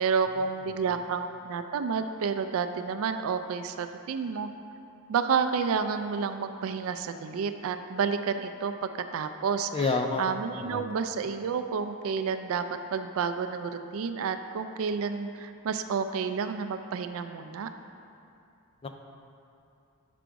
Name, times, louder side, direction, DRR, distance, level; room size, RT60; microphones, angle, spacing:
voice 1, 0.0-4.5 5.1-17.7, right 6 dB, 65° right, 9 dB, 0.3 m, -30 dB
voice 2, 9.7-10.3 10.5-10.8 18.8-19.0, left 3 dB, 25° left, 5 dB, 0.4 m, -29 dB
6.1 x 5.0 x 4.6 m, 2.6 s
head